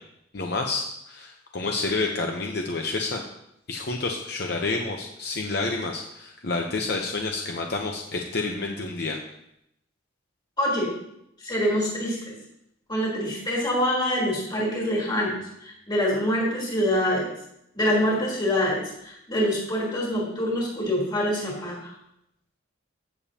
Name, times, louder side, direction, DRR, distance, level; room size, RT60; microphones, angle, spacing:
voice 1, 0.3-3.2 3.7-9.2, left 3 dB, 55° left, 2 dB, 0.8 m, -29 dB
voice 2, 10.6-10.9 11.4-12.3 12.9-15.4 15.6-17.3 17.7-21.9, equal, 25° left, -3 dB, 3.7 m, -25 dB
15.5 x 7.1 x 2.9 m, 0.79 s
head